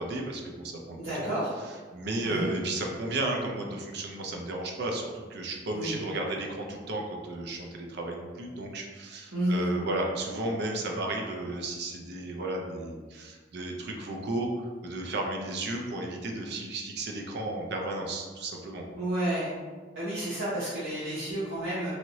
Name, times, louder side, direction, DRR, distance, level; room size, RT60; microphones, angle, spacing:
voice 1, 0.0-1.3 1.9-18.9, right 2 dB, 60° right, 1 dB, 0.5 m, -33 dB
voice 2, 1.0-1.5 2.2-2.5 5.7-5.9 9.3-9.6 19.0-19.5 19.9-21.9, right 1 dB, 90° right, -12 dB, 1.0 m, -30 dB
3.1 x 2.8 x 2.6 m, 1.4 s
head